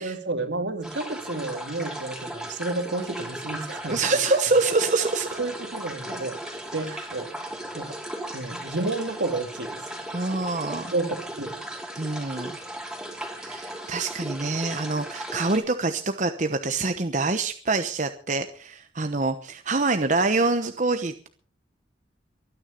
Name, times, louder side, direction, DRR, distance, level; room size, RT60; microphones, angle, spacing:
voice 1, 0.0-4.0 5.4-6.4 6.7-7.3 7.7-8.0 8.3-10.4 10.9-11.6, right 2 dB, 70° right, 2.3 m, -31 dB
sound 1, 0.8-15.6, right 1 dB, 5° right, 3.1 m, -36 dB
voice 2, 3.9-5.4 6.9-7.0 10.1-10.9 12.0-12.6 13.4-21.3, right 3 dB, 40° right, 1.0 m, -25 dB
23.5 x 9.9 x 5.2 m
head